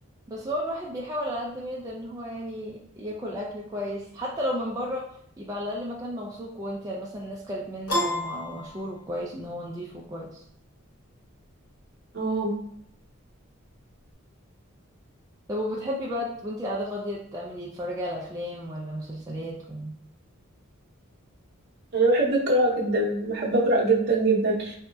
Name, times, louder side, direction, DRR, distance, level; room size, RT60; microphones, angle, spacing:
voice 1, 0.3-5.0 5.4-10.4 15.5-20.0, equal, 15° right, -4 dB, 0.3 m, -33 dB
Piano, 7.9-9.4, left 1 dB, 90° left, 1.0 m, -29 dB
voice 2, 12.1-12.5 21.9-24.7, right 2 dB, 50° right, -3 dB, 0.7 m, -23 dB
3.9 x 2.7 x 2.2 m, 0.71 s
head